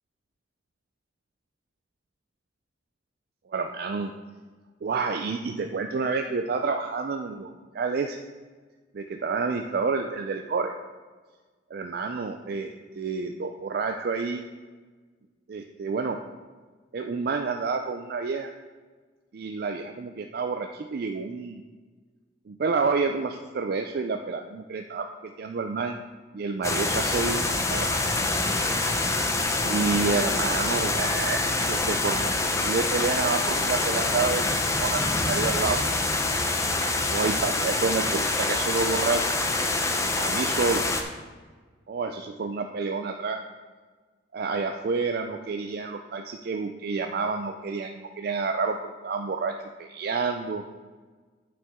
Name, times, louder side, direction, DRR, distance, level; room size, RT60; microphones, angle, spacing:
voice 1, 3.5-4.1 4.8-8.2 8.9-10.7 11.7-14.5 15.5-16.2 16.9-18.5 19.3-21.6 22.5-26.0 26.3-28.1 29.6-34.4 34.8-35.9 36.1-36.3 37.1-39.2 40.2-40.8 41.9-43.4 44.3-49.5 49.8-50.6, right 4 dB, 55° right, 5 dB, 0.4 m, -29 dB
sound 1, 26.6-41.0, left 2 dB, 15° left, 0.5 m, -26 dB
8.6 x 7.0 x 3.6 m, 1.4 s
head